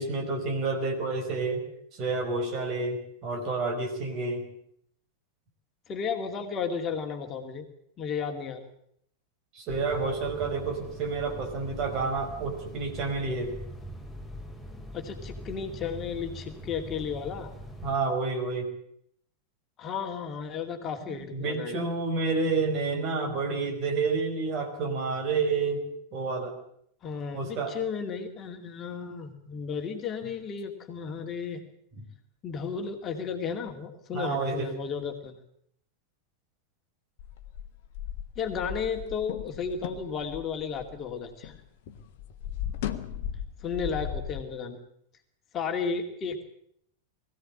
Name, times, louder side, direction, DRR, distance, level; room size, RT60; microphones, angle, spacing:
voice 1, 0.0-1.6 1.9-4.5 9.5-13.6 17.8-18.7 21.1-25.8 26.1-26.5 27.3-27.7 34.1-34.7, right 4 dB, 40° right, 5 dB, 5.0 m, -29 dB
voice 2, 5.9-7.7 8.0-8.7 14.9-17.5 19.8-21.8 27.0-31.6 32.4-35.4 38.4-41.6 43.6-44.8 45.5-46.4, left 6 dB, 30° left, 4 dB, 2.4 m, -33 dB
sound 1, 9.7-17.9, equal, ahead, 5.0 m, -42 dB
sound 2, 37.2-41.6 41.9-44.4, left 10 dB, 50° left, 1.5 m, -37 dB
21.5 x 16.0 x 8.6 m, 0.70 s
figure-of-eight pair, 90°, 0 cm